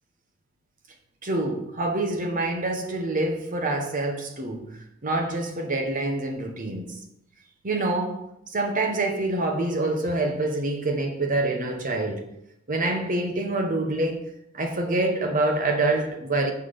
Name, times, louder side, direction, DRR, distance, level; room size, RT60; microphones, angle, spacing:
voice 1, 1.2-7.0 7.6-8.2 8.5-12.3 12.7-14.2 14.5-16.5, right 2 dB, 40° right, 0.9 m, -26 dB
6.0 x 5.8 x 5.0 m
head